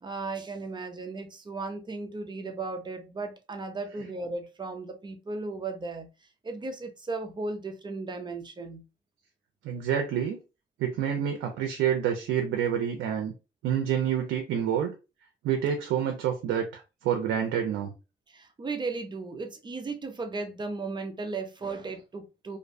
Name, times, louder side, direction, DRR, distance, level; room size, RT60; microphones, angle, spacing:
voice 1, 0.0-6.1 6.4-8.8 18.3-22.6, right 3 dB, 25° right, 0.5 m, -36 dB
voice 2, 9.6-10.4 10.8-13.3 13.6-14.9 15.4-17.9, right 9 dB, 85° right, 0.5 m, -28 dB
2.5 x 2.1 x 2.5 m
cardioid pair, 90°, 20 cm